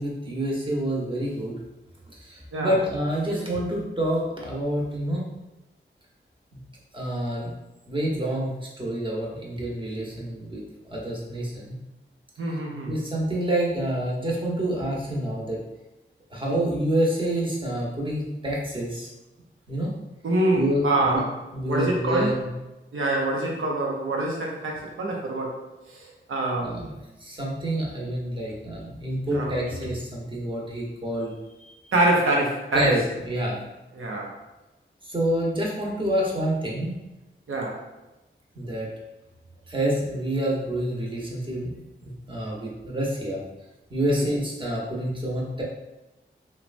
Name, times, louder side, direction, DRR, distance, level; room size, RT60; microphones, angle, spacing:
voice 1, 0.0-1.6 2.1-5.2 6.5-6.6 6.9-7.5 7.9-10.6 10.9-11.8 12.9-15.6 16.3-19.1 19.7-19.9 20.5-21.2 21.5-22.5 23.5-23.6 26.6-26.9 27.2-31.7 32.7-33.6 35.0-36.9 38.5-38.9 39.7-41.8 42.3-43.4 43.9-45.6, right 1 dB, 25° right, -3 dB, 0.9 m, -27 dB
voice 2, 12.4-13.0 20.2-21.3 21.6-22.4 22.9-25.6 25.9-26.9 29.3-29.9 31.9-32.9 33.9-34.3 37.5-37.8 44.1-44.3, right 2 dB, 85° right, -1 dB, 0.6 m, -25 dB
3.0 x 2.1 x 2.5 m, 1.0 s
cardioid pair, 40°, 21 cm